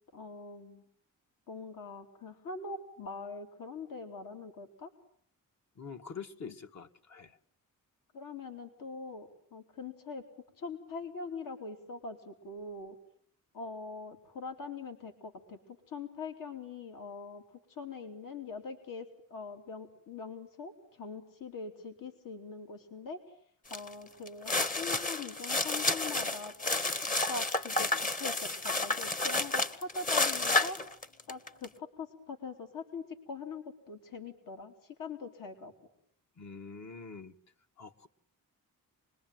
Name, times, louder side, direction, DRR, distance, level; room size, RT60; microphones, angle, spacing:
voice 1, 0.1-0.8 1.5-4.9 6.4-6.5 8.1-10.2 10.6-13.0 13.5-23.4 23.7-30.8 31.3-35.7, left 4 dB, 70° left, 5 dB, 3.1 m, -43 dB
voice 2, 5.7-7.4 36.3-37.4 37.8-38.1, left 5 dB, 50° left, 5 dB, 1.7 m, -45 dB
sound 1, 23.7-23.9 24.3-31.7, left 2 dB, 25° left, 1.2 m, -31 dB
28.5 x 21.5 x 9.1 m, 0.66 s
wide cardioid pair, 145°, 34 cm